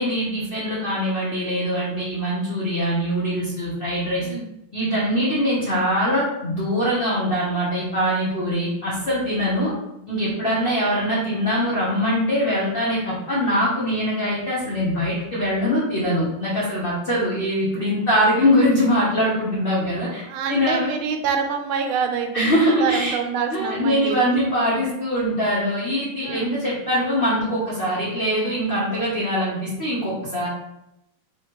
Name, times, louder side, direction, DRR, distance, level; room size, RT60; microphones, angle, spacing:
voice 1, 0.0-4.3 4.7-9.7 10.1-20.9 22.3-23.2 23.5-30.5, equal, 70° left, -7 dB, 0.5 m, -22 dB
voice 2, 20.2-24.4 26.2-26.5, right 6 dB, 80° right, 5 dB, 1.4 m, -26 dB
4.3 x 3.1 x 2.9 m, 0.87 s
omnidirectional pair, 2.3 m